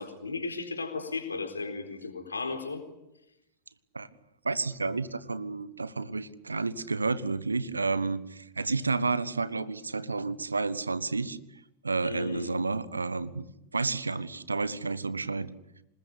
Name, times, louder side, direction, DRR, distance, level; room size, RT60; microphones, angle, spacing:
voice 1, 0.0-2.8 12.0-12.5, left 3 dB, 75° left, 6 dB, 4.0 m, -35 dB
voice 2, 4.4-11.4 11.8-13.4 13.7-15.5, right 3 dB, 80° right, 16 dB, 1.3 m, -30 dB
26.5 x 20.5 x 8.5 m, 0.88 s
figure-of-eight pair, 90°, 0 cm